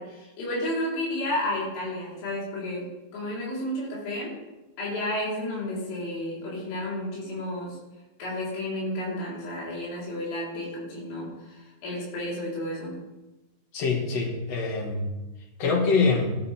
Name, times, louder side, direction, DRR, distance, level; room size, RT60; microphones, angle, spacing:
voice 1, 0.0-2.9 3.1-4.4 4.8-7.8 8.2-13.0, left 1 dB, 80° left, -6 dB, 7.5 m, -32 dB
voice 2, 13.7-15.1 15.6-16.4, left 4 dB, 45° left, 1 dB, 2.4 m, -24 dB
17.0 x 12.0 x 3.8 m, 1.1 s
omnidirectional pair, 5.7 m